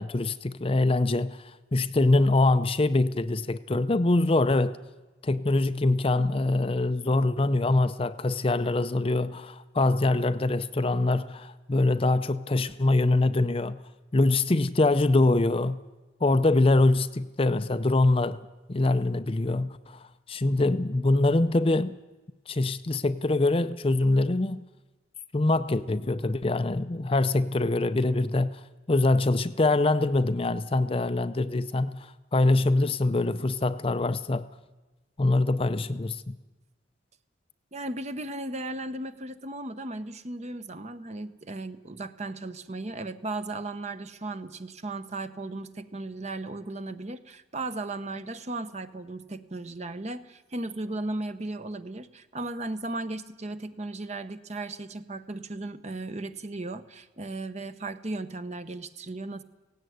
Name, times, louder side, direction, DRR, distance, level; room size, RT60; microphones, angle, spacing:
voice 1, 0.0-1.4 1.7-4.8 5.2-13.8 14.1-15.8 16.2-18.4 18.7-20.0 20.3-22.0 22.5-24.6 25.3-28.6 28.9-32.0 32.3-34.5 35.2-36.3, left 2 dB, 30° left, 0.5 m, -24 dB
voice 2, 37.7-59.4, right 2 dB, 35° right, 0.9 m, -36 dB
17.0 x 16.5 x 9.3 m
head